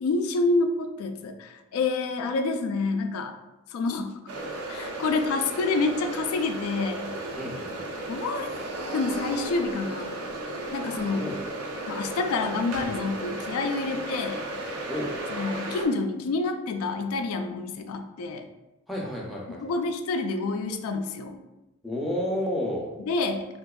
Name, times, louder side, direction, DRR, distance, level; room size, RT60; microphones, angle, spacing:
voice 1, 0.0-3.3 3.7-4.1 4.7-7.0 8.1-8.5 8.9-10.2 10.7-11.3 11.9-14.4 15.3-18.5 19.6-21.4 23.1-23.5, left 3 dB, 80° left, 6 dB, 0.3 m, -28 dB
sound 1, 4.3-15.9, right 1 dB, 80° right, 0.5 m, -34 dB
voice 2, 7.4-7.9 11.1-11.4 14.9-15.1 18.9-19.6 21.8-22.9, left 1 dB, ahead, -3 dB, 0.4 m, -31 dB
3.4 x 2.8 x 2.3 m, 1.0 s
head